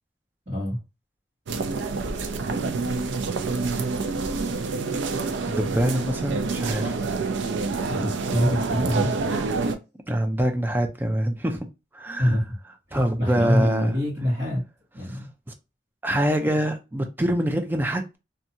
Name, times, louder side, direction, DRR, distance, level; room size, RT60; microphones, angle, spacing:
voice 1, 0.5-0.8 7.9-9.1 12.2-12.6 12.9-14.6 14.9-15.3, equal, 35° right, 1.2 m, -25 dB
sound 1, 1.5-9.8, right 4 dB, 85° right, 0.4 m, -27 dB
voice 2, 5.5-7.0 10.1-11.7 11.9-12.3 12.9-13.9 15.1-15.2 16.0-18.2, right 1 dB, 10° right, 0.4 m, -24 dB
2.6 x 2.3 x 2.7 m
head